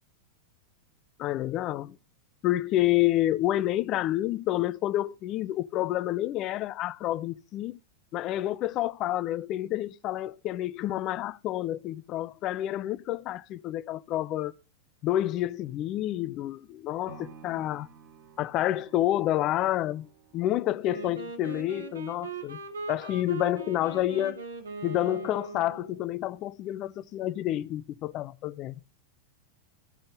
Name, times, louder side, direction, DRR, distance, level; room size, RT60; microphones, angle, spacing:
voice 1, 1.2-2.0 2.4-7.8 8.1-14.5 15.0-17.9 18.4-20.1 20.3-22.6 22.9-24.4 24.8-28.8, left 14 dB, 35° left, 0.5 m, -29 dB
sound 1, 17.1-25.2 25.6-25.7, right 6 dB, 40° right, 1.7 m, -55 dB
Wind instrument woodwind instrument, 20.8-26.0, right 4 dB, 70° right, 1.5 m, -40 dB
13.0 x 5.2 x 3.9 m
figure-of-eight pair, 90°, 0 cm